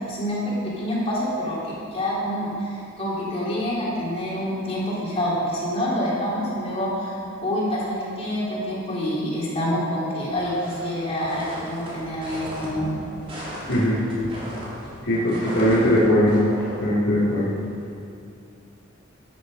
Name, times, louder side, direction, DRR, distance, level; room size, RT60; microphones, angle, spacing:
voice 1, 0.0-7.1 7.4-12.9, equal, 30° left, -7 dB, 3.1 m, -27 dB
sound 1, 10.4-17.9, equal, 30° right, 3.4 m, -37 dB
voice 2, 13.7-14.0 15.0-16.4 16.8-17.5, equal, 75° left, -11 dB, 2.7 m, -20 dB
13.5 x 9.3 x 5.2 m, 2.5 s
head